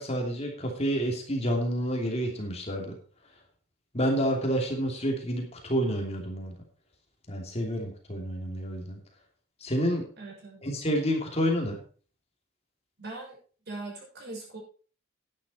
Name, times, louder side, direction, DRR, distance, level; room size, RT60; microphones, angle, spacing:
voice 1, 0.0-2.9 3.9-6.5 7.3-9.0 9.6-10.0 10.6-11.8, equal, 30° left, 1 dB, 2.8 m, -29 dB
voice 2, 10.2-10.6 13.0-13.4 13.7-14.6, right 2 dB, 55° right, -2 dB, 6.6 m, -40 dB
11.5 x 10.0 x 4.3 m, 0.39 s
head